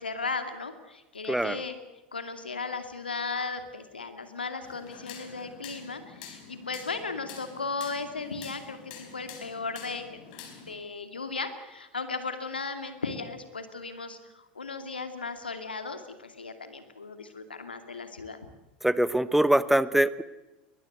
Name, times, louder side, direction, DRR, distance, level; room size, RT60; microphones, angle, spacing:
voice 1, 0.0-1.8 2.1-10.3 10.6-18.4, left 4 dB, 85° left, 8 dB, 2.5 m, -36 dB
sound 1, 4.6-10.7, left 6 dB, 60° left, 4.6 m, -47 dB
voice 2, 18.8-20.2, right 1 dB, 5° right, 16 dB, 1.0 m, -23 dB
22.5 x 19.5 x 8.2 m, 1.0 s
figure-of-eight pair, 85°, 5 cm